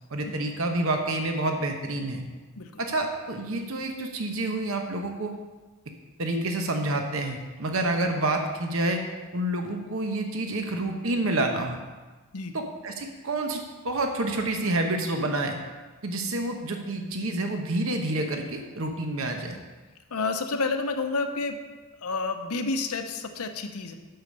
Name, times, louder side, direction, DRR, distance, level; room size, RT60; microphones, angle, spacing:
voice 1, 0.1-2.2 2.8-5.3 6.2-9.0 9.3-11.8 12.5-15.6 16.0-19.6, right 2 dB, 65° right, 4 dB, 0.9 m, -28 dB
voice 2, 20.1-21.6 22.0-23.9, left 3 dB, 85° left, 7 dB, 0.8 m, -29 dB
7.9 x 6.6 x 5.3 m, 1.3 s
head